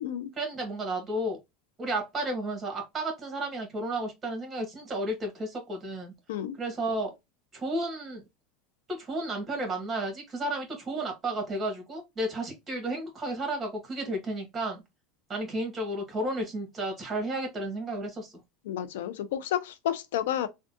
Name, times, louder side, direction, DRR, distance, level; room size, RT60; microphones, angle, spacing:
voice 1, 0.3-1.4 1.8-6.1 6.6-7.1 7.5-8.2 8.9-14.8 15.3-18.4, right 1 dB, 25° right, 1.5 m, -32 dB
voice 2, 18.7-20.5, left 11 dB, 90° left, 0.4 m, -31 dB
3.5 x 2.2 x 2.5 m
supercardioid pair, 125°, 0 cm